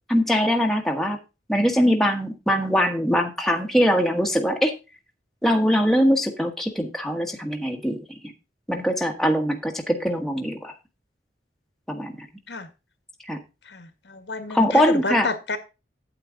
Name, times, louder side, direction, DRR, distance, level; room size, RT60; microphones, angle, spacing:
voice 1, 0.1-1.2 1.5-4.7 5.4-8.0 8.7-10.7 11.9-12.1 13.3-13.4 14.5-15.3, equal, ahead, 2 dB, 1.3 m, -22 dB
voice 2, 13.7-15.6, left 3 dB, 85° left, 8 dB, 1.8 m, -29 dB
8.8 x 8.5 x 3.7 m, 0.28 s
head